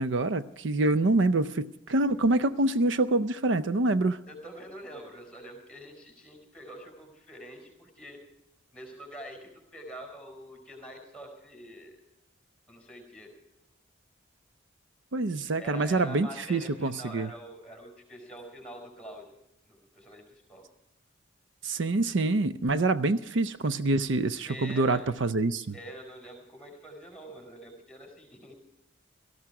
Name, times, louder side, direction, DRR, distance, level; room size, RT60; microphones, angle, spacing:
voice 1, 0.0-4.2 15.1-17.3 21.6-25.7, right 2 dB, 70° right, 13 dB, 0.6 m, -26 dB
voice 2, 4.3-8.2 8.7-12.0 12.7-13.3 15.6-19.3 19.7-20.6 24.5-25.1 25.7-28.5, equal, 5° left, 2 dB, 4.5 m, -45 dB
18.0 x 14.0 x 4.8 m, 0.83 s
head